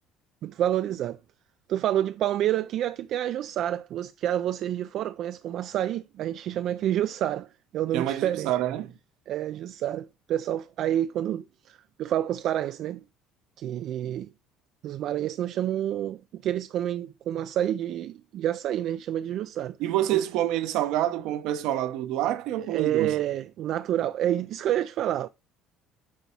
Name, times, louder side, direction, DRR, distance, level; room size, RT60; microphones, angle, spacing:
voice 1, 0.4-1.2 1.7-8.5 9.3-13.0 13.6-14.3 14.8-19.8 20.1-20.2 22.7-25.3, right 11 dB, 60° right, 0.3 m, -28 dB
voice 2, 7.9-8.9 19.8-23.1, right 13 dB, 75° right, 0.8 m, -27 dB
9.3 x 3.5 x 4.3 m
cardioid pair, 110°, 0 cm